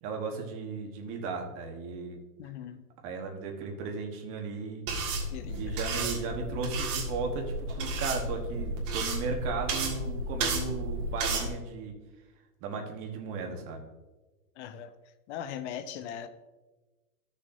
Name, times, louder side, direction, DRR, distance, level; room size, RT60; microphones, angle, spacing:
voice 1, 0.0-2.2 3.0-4.8 5.5-11.9 12.6-13.8, right 4 dB, 30° right, 2 dB, 1.2 m, -36 dB
voice 2, 2.4-2.8 5.3-6.0 14.6-14.9 15.3-16.3, left 9 dB, 45° left, 10 dB, 0.7 m, -40 dB
sound 1, 4.9-11.5, right 2 dB, 50° right, 1.9 m, -32 dB
14.0 x 6.7 x 2.7 m, 1.2 s
hypercardioid pair, 150°, 46 cm